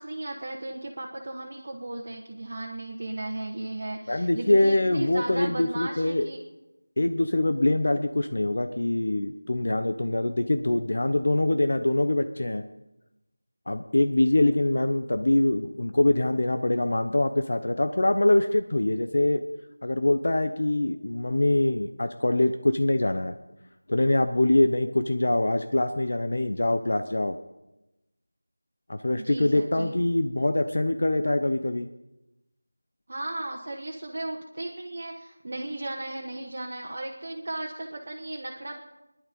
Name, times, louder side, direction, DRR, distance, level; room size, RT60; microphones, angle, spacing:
voice 1, 0.0-6.4 29.2-29.9 33.1-38.8, right 2 dB, 45° right, 0 dB, 1.5 m, -35 dB
voice 2, 4.1-6.3 7.0-12.6 13.7-19.4 19.8-23.3 23.9-27.4 28.9-31.9, left 1 dB, 55° left, 9 dB, 0.8 m, -24 dB
19.0 x 11.0 x 5.3 m, 0.98 s
figure-of-eight pair, 175°, 0 cm